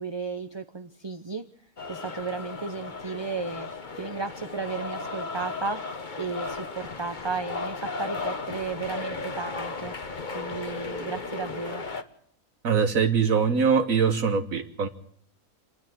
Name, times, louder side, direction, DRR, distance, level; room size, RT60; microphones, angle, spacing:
voice 1, 0.0-1.4 1.9-3.7 4.0-5.8 6.2-9.9 10.3-11.8, right 4 dB, 25° right, 8 dB, 0.7 m, -34 dB
sound 1, 1.8-12.0, left 4 dB, 35° left, 1.3 m, -35 dB
voice 2, 12.6-14.9, right 6 dB, 70° right, 6 dB, 1.6 m, -22 dB
28.5 x 10.0 x 9.1 m, 0.64 s
omnidirectional pair, 1.5 m